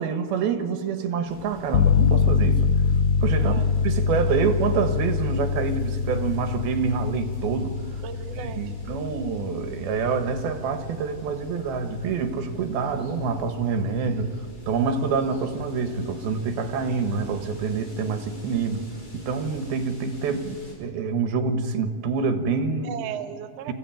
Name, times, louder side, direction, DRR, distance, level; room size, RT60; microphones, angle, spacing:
voice 1, 0.0-2.7 3.2-8.0 8.4-14.3 14.7-18.9 19.1-23.0 23.7-23.8, right 5 dB, 85° right, 8 dB, 3.3 m, -27 dB
sound 1, 1.2-20.7, left 1 dB, 25° left, 5.1 m, -44 dB
sound 2, 1.7-12.3, left 6 dB, 80° left, 2.9 m, -25 dB
voice 2, 3.4-3.7 4.2-4.4 8.0-8.7 22.8-23.7, right 9 dB, 65° right, 6 dB, 1.6 m, -36 dB
27.0 x 14.5 x 9.1 m, 2.2 s
omnidirectional pair, 4.3 m